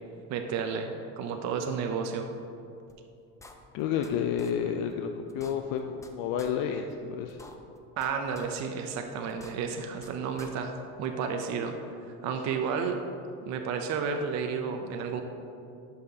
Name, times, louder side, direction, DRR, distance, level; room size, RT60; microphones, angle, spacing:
voice 1, 0.3-2.3 8.0-11.7 12.2-13.0 13.5-15.2, right 6 dB, 50° right, 5 dB, 0.6 m, -32 dB
sound 1, 2.9-3.0 3.4-4.1 4.4-4.5 4.9-5.0 5.3-6.1 6.4-6.5 6.9-7.0 7.3-8.1 8.4-8.5 8.9-9.0 9.3-10.1 10.4-10.5, left 3 dB, 10° left, 0.4 m, -49 dB
voice 2, 3.7-7.4, left 8 dB, 70° left, 5 dB, 0.5 m, -30 dB
11.5 x 5.6 x 2.8 m, 2.7 s
cardioid pair, 125°, 37 cm